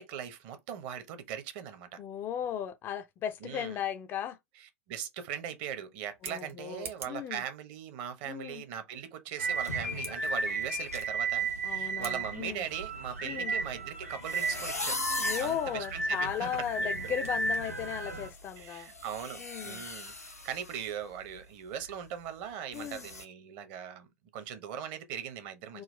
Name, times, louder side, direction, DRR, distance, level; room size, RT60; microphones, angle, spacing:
voice 1, 0.0-2.0 3.4-3.8 4.9-15.0 15.4-17.1 18.6-24.1 24.3-25.8, right 9 dB, 40° right, 0.8 m, -40 dB
voice 2, 2.0-4.4 6.2-7.4 8.2-8.6 11.6-12.7 13.2-13.5 15.2-18.9 19.4-19.8 22.7-23.1 25.7-25.8, left 9 dB, 25° left, 0.4 m, -36 dB
Scissors, 6.0-7.3 9.9-10.2 11.9-12.2, right 6 dB, 60° right, 1.2 m, -44 dB
sound 1, 9.4-18.3, right 3 dB, 80° right, 1.2 m, -34 dB
sound 2, 14.2-15.6 16.2-16.3 16.7-16.9 17.2-20.9 21.2-21.4 21.8-21.9 22.7-23.2, left 2 dB, 85° left, 0.7 m, -39 dB
3.7 x 2.4 x 3.2 m
figure-of-eight pair, 95°, 8 cm